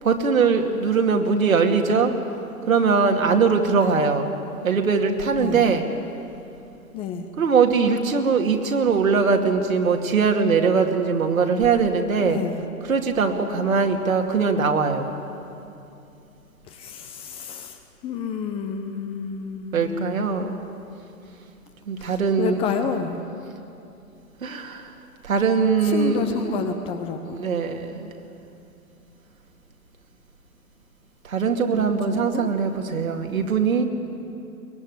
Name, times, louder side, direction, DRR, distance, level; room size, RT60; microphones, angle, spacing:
voice 1, 0.0-2.1 2.7-4.4 4.6-5.8 7.4-12.4 12.9-15.1 19.7-20.6 21.9-22.6 24.4-24.9 25.2-26.6 27.3-28.1 31.2-33.9, right 5 dB, 60° right, 4 dB, 2.6 m, -21 dB
voice 2, 5.3-5.6 6.9-7.3 12.2-12.6 16.7-20.5 22.0-23.2 25.8-27.5 31.7-32.5, left 6 dB, 10° left, 6 dB, 0.7 m, -30 dB
23.0 x 20.0 x 9.7 m, 2.7 s
figure-of-eight pair, 120°, 45 cm